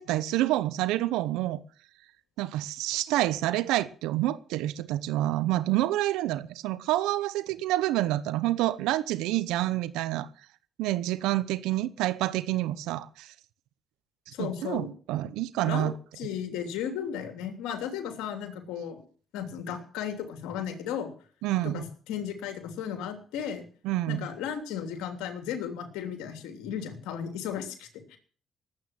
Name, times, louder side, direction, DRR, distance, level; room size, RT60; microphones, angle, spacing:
voice 1, 0.0-1.6 2.4-10.3 10.8-13.3 14.3-15.9 21.4-21.8 23.8-24.3, right 15 dB, 90° right, 0.9 m, -28 dB
voice 2, 14.3-14.9 15.6-15.9 16.2-19.0 19.3-21.1 21.6-23.6 24.1-28.2, left 8 dB, 85° left, 3.1 m, -35 dB
19.5 x 8.8 x 7.7 m
supercardioid pair, 60°, 0 cm